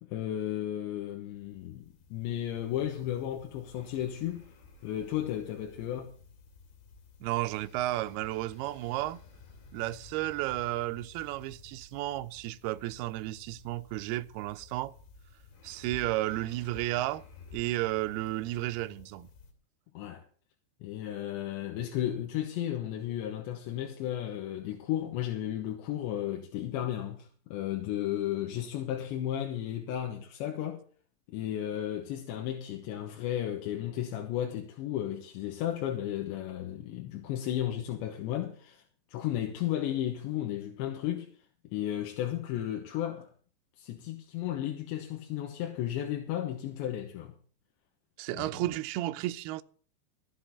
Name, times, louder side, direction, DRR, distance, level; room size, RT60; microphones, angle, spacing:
voice 1, 0.0-4.5 4.8-6.1 20.0-20.2 20.8-30.8 31.3-38.8 39.1-41.3 41.7-43.3 43.8-47.3 48.3-48.6, left 11 dB, 85° left, 3.5 m, -34 dB
sound 1, 1.0-19.5, left 4 dB, 65° left, 4.7 m, -54 dB
voice 2, 7.2-9.2 9.7-14.9 15.6-17.2 17.5-19.3 48.2-49.6, right 16 dB, 80° right, 2.4 m, -33 dB
14.0 x 8.0 x 7.0 m
omnidirectional pair, 5.2 m